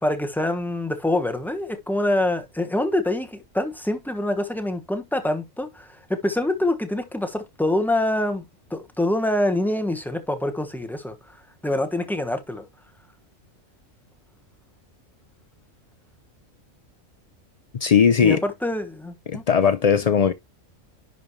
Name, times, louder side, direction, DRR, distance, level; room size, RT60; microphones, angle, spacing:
voice 1, 0.0-8.4 8.7-11.3 11.6-12.6 18.2-19.4, left 1 dB, ahead, 1.1 m, -25 dB
voice 2, 17.8-18.4 19.3-20.3, left 7 dB, 80° left, 0.3 m, -18 dB
10.5 x 5.0 x 3.1 m
omnidirectional pair, 1.4 m